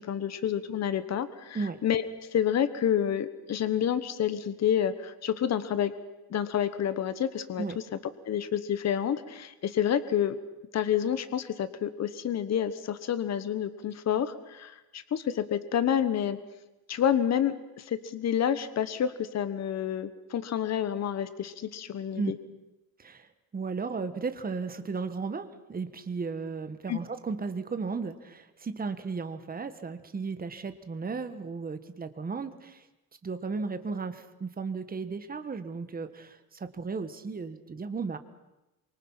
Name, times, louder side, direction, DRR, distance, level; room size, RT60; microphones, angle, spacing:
voice 1, 0.0-2.0 2.3-5.9 6.3-7.6 8.3-10.4 10.7-16.4 16.9-22.4 26.9-27.0, left 9 dB, 45° left, 13 dB, 1.2 m, -29 dB
voice 2, 23.0-32.9 33.2-38.2, right 4 dB, 25° right, 10 dB, 1.5 m, -35 dB
26.5 x 24.5 x 5.7 m, 0.99 s
cardioid pair, 155°, 37 cm